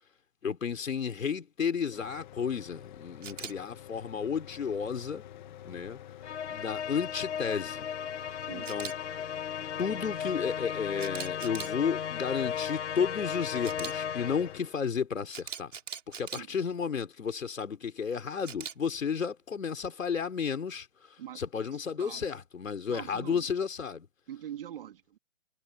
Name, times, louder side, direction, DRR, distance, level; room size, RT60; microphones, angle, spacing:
voice 1, 0.4-5.2 5.6-6.0 6.5-7.9 8.5-8.9 9.8-15.7 16.1-20.9 21.4-24.1, left 6 dB, 85° left, 4.5 m, -32 dB
Mechanical fan, 1.9-14.6, left 11 dB, 35° left, 2.2 m, -48 dB
Camera, 3.2-3.5 8.6-8.9 11.0-11.7 13.6-13.9 15.3-16.4 18.4-18.7, right 7 dB, 70° right, 5.1 m, -40 dB
Musical instrument, 6.2-14.7, left 8 dB, 60° left, 4.7 m, -36 dB
voice 2, 8.4-8.7 16.3-16.6 21.2-21.4 22.0-22.3 22.9-23.5 24.3-25.2, right 10 dB, 45° right, 2.9 m, -43 dB
hypercardioid pair, 165°, 38 cm